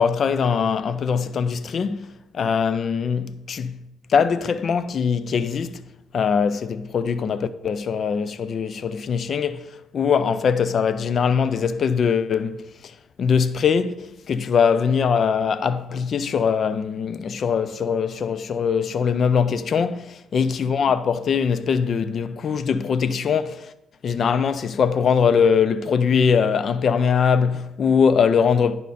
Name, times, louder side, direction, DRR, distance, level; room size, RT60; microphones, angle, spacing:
voice 1, 0.0-3.8 4.1-5.8 6.1-9.6 9.9-12.7 13.2-23.7 24.0-28.8, left 6 dB, 55° left, 0.5 m, -21 dB
10.5 x 5.3 x 4.1 m
cardioid pair, 90°, 0 cm